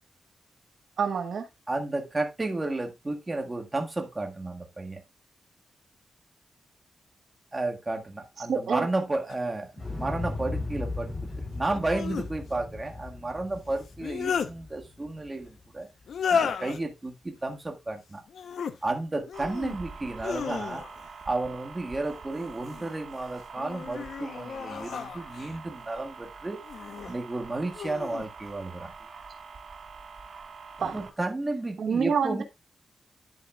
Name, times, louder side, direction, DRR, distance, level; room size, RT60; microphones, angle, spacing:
voice 1, 1.0-1.5 8.5-8.9 30.8-30.9 31.8-32.4, right 6 dB, 70° right, 1.2 m, -27 dB
voice 2, 1.7-5.0 7.5-15.9 16.3-18.2 18.8-20.8 21.3-26.6 27.1-28.9 30.8-32.4, right 2 dB, 20° right, 1.8 m, -32 dB
sound 1, 9.3-9.4 11.7-12.3 13.8-14.5 16.1-16.8 18.3-18.8 19.3-19.8 20.2-21.1 22.3-22.9 23.5-25.6 26.6-27.1 27.7-28.3, left 6 dB, 75° left, 0.9 m, -33 dB
Explosion, 9.8-15.8 16.1-16.2, left 2 dB, 25° left, 5.9 m, -37 dB
sound 2, 19.3-31.1, right 5 dB, 50° right, 1.6 m, -45 dB
10.5 x 8.3 x 2.4 m
wide cardioid pair, 135°, 0 cm